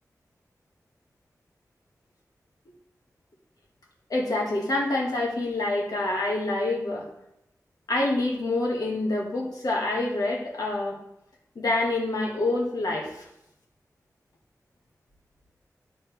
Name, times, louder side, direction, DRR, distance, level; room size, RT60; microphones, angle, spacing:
voice 1, 4.1-7.1 7.9-11.0 11.6-13.3, left 2 dB, 90° left, -2 dB, 1.9 m, -27 dB
12.0 x 4.2 x 3.5 m, 0.82 s
wide cardioid pair, 80°, 6 cm